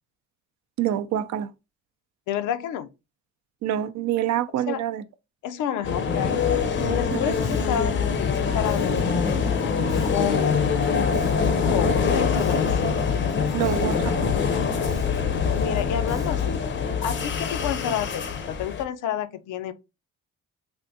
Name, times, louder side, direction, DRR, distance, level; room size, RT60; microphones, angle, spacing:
voice 1, 0.8-1.5 3.6-5.0 7.1-7.3 13.5-14.2, right 11 dB, 70° right, 0.4 m, -26 dB
voice 2, 2.3-2.9 4.7-4.8 5.4-6.4 6.8-9.4 10.0-10.7 11.7-13.0 15.6-16.6 17.0-19.7, left 10 dB, 85° left, 0.5 m, -29 dB
sound 1, 5.8-18.8, left 6 dB, 40° left, 0.5 m, -24 dB
Bass guitar, 6.8-16.7, left 1 dB, 10° right, 0.4 m, -37 dB
3.4 x 2.6 x 2.6 m
cardioid pair, 90°, 30 cm